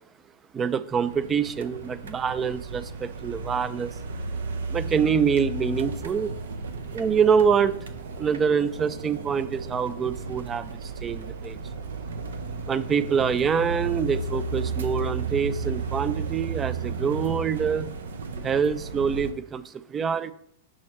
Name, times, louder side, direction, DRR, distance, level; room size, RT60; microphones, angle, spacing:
voice 1, 0.5-3.9 4.7-6.3 6.9-7.8 8.2-11.6 12.7-17.9 18.4-19.6 19.9-20.3, right 6 dB, 20° right, 16 dB, 0.3 m, -25 dB
sound 1, 0.9-19.3, right 4 dB, 90° right, 0.6 m, -34 dB
6.3 x 5.9 x 2.9 m, 0.71 s
hypercardioid pair, 125°, 0 cm